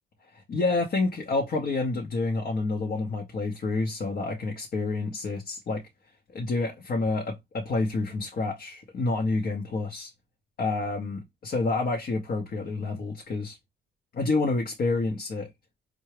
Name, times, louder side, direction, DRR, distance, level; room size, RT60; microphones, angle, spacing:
voice 1, 0.3-5.8 6.3-10.1 10.6-13.6 14.1-15.5, left 3 dB, 50° left, 0.7 m, -28 dB
4.6 x 2.0 x 3.1 m
cardioid pair, 90°, 20 cm